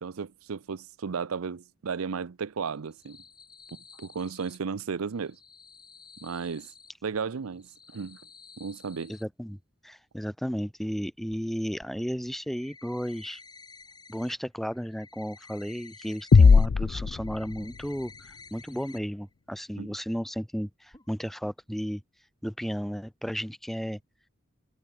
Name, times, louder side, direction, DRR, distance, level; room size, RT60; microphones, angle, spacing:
voice 1, 0.0-3.2 3.7-5.4 6.2-6.7 7.0-8.2 8.6-9.1 19.8-19.9, right 5 dB, 85° right, 0.6 m, -34 dB
sound 1, 2.8-4.6 5.2-6.9 7.5-9.2 11.3-11.4 11.8-11.9 12.3-14.3 14.6-16.7 17.0-19.0 19.3-19.4 19.8-19.9 20.9-21.1 21.4-21.5, left 4 dB, 20° left, 3.9 m, -52 dB
voice 2, 9.1-9.6 9.8-13.4 14.1-18.1 18.5-22.0 22.4-24.0, equal, ahead, 0.7 m, -33 dB
sound 2, 16.3-18.0, left 5 dB, 55° left, 0.4 m, -19 dB
head